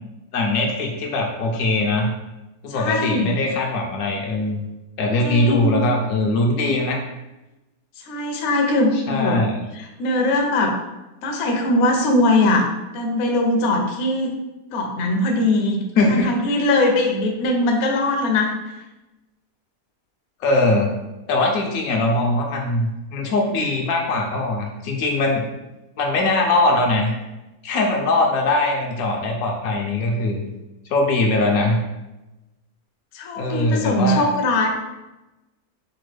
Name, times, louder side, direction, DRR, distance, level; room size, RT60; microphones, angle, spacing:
voice 1, 0.3-2.1 2.6-4.7 5.0-7.0 9.1-9.6 16.0-16.7 20.4-20.9 21.3-25.4 26.0-27.2 27.6-30.4 30.9-31.8 33.4-34.3, left 2 dB, 80° left, 1 dB, 1.2 m, -21 dB
voice 2, 2.7-3.3 5.2-5.8 8.0-9.4 9.8-10.8 11.2-14.3 14.7-15.8 16.1-18.7 33.1-34.7, left 2 dB, 60° left, 2 dB, 0.8 m, -21 dB
5.1 x 2.2 x 3.2 m, 1.0 s
omnidirectional pair, 1.5 m